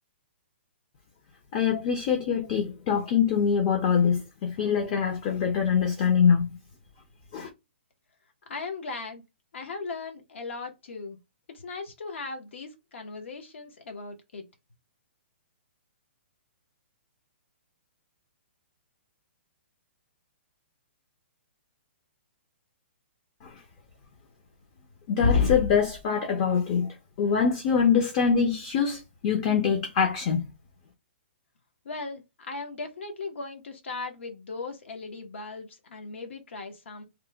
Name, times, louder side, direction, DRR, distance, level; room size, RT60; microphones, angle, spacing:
voice 1, 1.5-6.5 7.3-7.5 23.4-23.6 25.1-26.9 27.2-30.5, left 6 dB, 25° left, 0.4 m, -24 dB
voice 2, 8.5-9.2 9.5-11.2 11.5-14.4 31.8-37.0, left 3 dB, 75° left, 0.8 m, -38 dB
2.8 x 2.1 x 3.3 m
hypercardioid pair, 170°, 7 cm